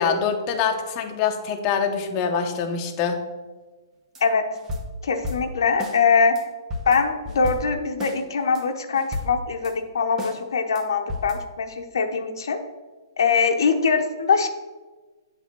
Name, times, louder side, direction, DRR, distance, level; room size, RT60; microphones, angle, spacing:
voice 1, 0.0-3.2, left 6 dB, 35° left, 3 dB, 0.8 m, -24 dB
sound 1, 4.1-4.2 4.5-6.0 6.3-6.4 6.7-8.2 8.5-8.6 8.9-9.7 10.2-10.4 10.7-10.8 11.1-11.4, left 1 dB, 20° right, 1.0 m, -33 dB
voice 2, 5.0-6.4 6.9-12.6 13.2-14.5, left 5 dB, 70° left, 5 dB, 0.8 m, -22 dB
8.2 x 3.5 x 6.0 m, 1.3 s
hypercardioid pair, 130°, 2 cm